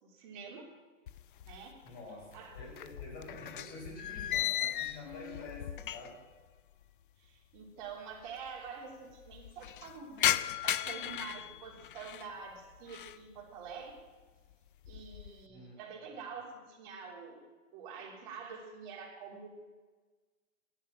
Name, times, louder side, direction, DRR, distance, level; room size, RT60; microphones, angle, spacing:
voice 1, 0.0-0.7 1.4-1.8 2.3-2.6 7.2-14.0 14.9-17.4 17.7-19.5, right 5 dB, 35° right, 0 dB, 3.3 m, -47 dB
sound 1, 1.1-1.9 2.2-6.3 6.6-6.7 7.6-7.7 7.8-7.9 8.2-8.7 9.1-12.3 12.7-13.2 13.7-14.1 14.5-15.4, left 12 dB, 45° left, 0.4 m, -36 dB
voice 2, 1.8-6.2 15.5-15.8 16.1-16.2, left 2 dB, 25° left, -3 dB, 5.7 m, -48 dB
14.0 x 11.5 x 6.2 m, 1.4 s
hypercardioid pair, 155°, 38 cm